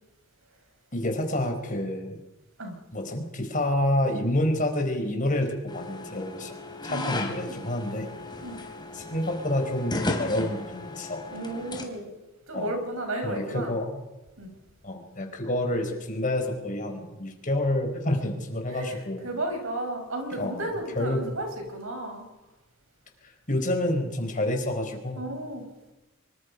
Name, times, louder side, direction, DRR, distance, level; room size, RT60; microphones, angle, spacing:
voice 1, 0.9-2.2 2.9-6.5 6.8-8.1 8.9-11.2 12.5-12.7 13.2-14.0 14.8-19.3 20.3-20.6 20.9-21.3 23.5-25.2, left 1 dB, 40° left, 4 dB, 4.7 m, -28 dB
sound 1, 5.7-11.8, left 2 dB, 20° left, 3.3 m, -35 dB
voice 2, 6.9-7.6 8.4-8.6 11.3-12.1 12.5-13.8 14.4-14.5 18.7-22.3 25.2-25.6, right 1 dB, 75° right, 3 dB, 6.4 m, -34 dB
25.5 x 24.5 x 5.5 m, 1.0 s
head